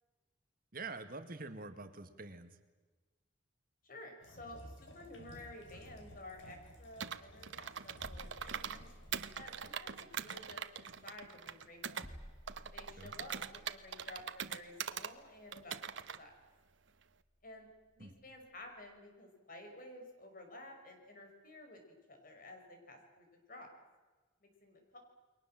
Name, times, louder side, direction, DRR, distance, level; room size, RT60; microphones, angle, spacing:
voice 1, 0.7-2.6 12.9-13.1 18.0-18.1, right 3 dB, 50° right, 9 dB, 1.8 m, -46 dB
voice 2, 3.8-8.9 9.3-12.0 12.7-16.3 17.4-17.7 18.0-23.7 24.4-25.0, left 1 dB, 50° left, 4 dB, 5.6 m, -53 dB
sound 1, 4.2-9.5, left 1 dB, 85° left, 3.4 m, -56 dB
Computer keyboard, 7.0-8.8 9.1-12.1 12.5-15.1 15.5-16.2, right 7 dB, 80° right, 1.1 m, -42 dB
sound 2, 7.7-19.0, equal, 30° left, 2.5 m, -58 dB
29.5 x 22.0 x 7.6 m, 1.3 s
head